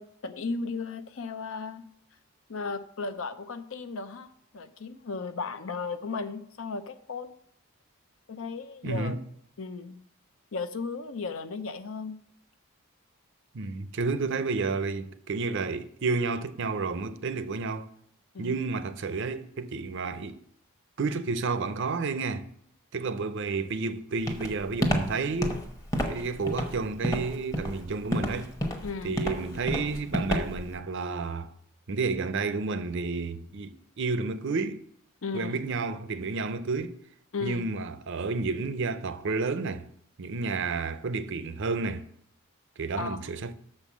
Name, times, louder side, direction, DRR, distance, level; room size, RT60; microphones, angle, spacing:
voice 1, 0.0-1.9 2.5-7.3 8.3-9.1 9.6-10.0 10.5-12.2 18.3-18.6 28.8-29.1 35.2-35.6 37.3-37.6 43.0-43.2, left 4 dB, 60° left, 0.6 m, -35 dB
voice 2, 8.8-9.2 13.5-17.9 18.4-20.4 21.0-22.5 22.9-25.6 26.1-28.5 29.0-31.5 31.9-34.8 35.3-37.0 37.4-39.9 40.2-42.1 42.8-43.5, right 4 dB, 55° right, 0.5 m, -31 dB
Walk footsteps, 24.3-30.7, equal, 15° left, 0.9 m, -29 dB
6.8 x 5.5 x 7.2 m
head